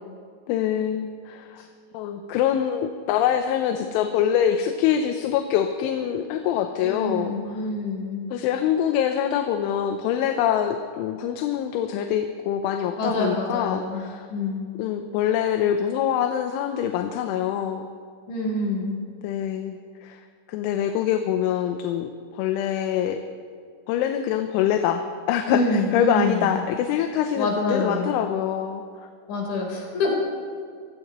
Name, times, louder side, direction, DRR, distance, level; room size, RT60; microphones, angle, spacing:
voice 1, 0.5-1.6 1.9-7.7 8.3-14.3 14.8-17.9 19.2-20.2 20.5-23.2 23.9-28.8, left 9 dB, 85° left, 6 dB, 3.2 m, -25 dB
voice 2, 6.8-8.3 13.0-14.7 18.3-19.0 25.5-26.6 27.4-28.1 29.3-30.1, left 2 dB, 70° left, -2 dB, 6.2 m, -26 dB
25.0 x 16.5 x 3.1 m, 2.1 s
omnidirectional pair, 5.4 m